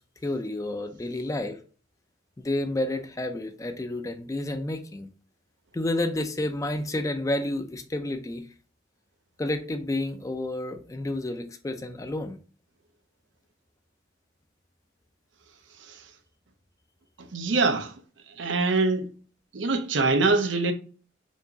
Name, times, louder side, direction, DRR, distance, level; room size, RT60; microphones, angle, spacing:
voice 1, 0.2-1.6 2.4-5.1 5.7-8.5 9.4-12.4, left 1 dB, 20° left, 0.4 m, -30 dB
voice 2, 17.2-17.9 18.4-19.1 19.5-20.7, right 3 dB, 85° right, 0.7 m, -24 dB
4.5 x 2.9 x 2.7 m
head